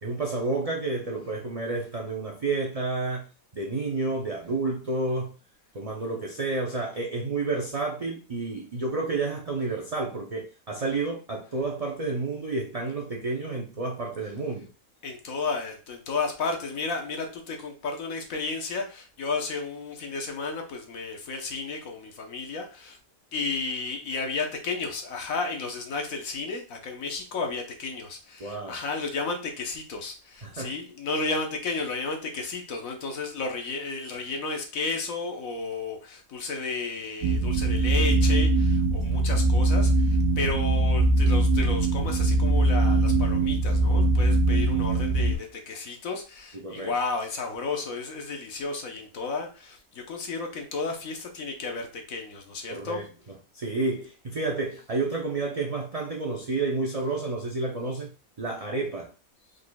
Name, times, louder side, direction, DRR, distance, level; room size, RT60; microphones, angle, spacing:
voice 1, 0.0-3.3 3.5-5.3 5.7-14.7 28.4-28.8 30.4-30.7 39.1-39.3 46.5-46.9 52.7-53.0 53.5-58.1 58.4-59.1, right 3 dB, 45° right, 0.4 m, -30 dB
voice 2, 15.0-23.0 23.3-53.0, left 4 dB, 70° left, 1.4 m, -33 dB
sound 1, 37.2-45.3, right 2 dB, 85° right, 1.3 m, -22 dB
4.9 x 4.0 x 2.3 m
omnidirectional pair, 1.5 m